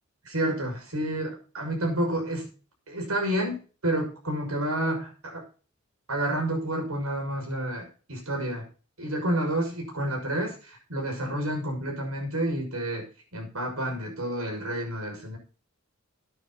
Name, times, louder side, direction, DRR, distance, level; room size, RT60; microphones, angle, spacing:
voice 1, 0.2-2.5 2.9-5.4 6.1-8.7 9.0-15.4, right 1 dB, 80° right, 2 dB, 6.2 m, -30 dB
13.0 x 9.5 x 4.1 m, 0.36 s
head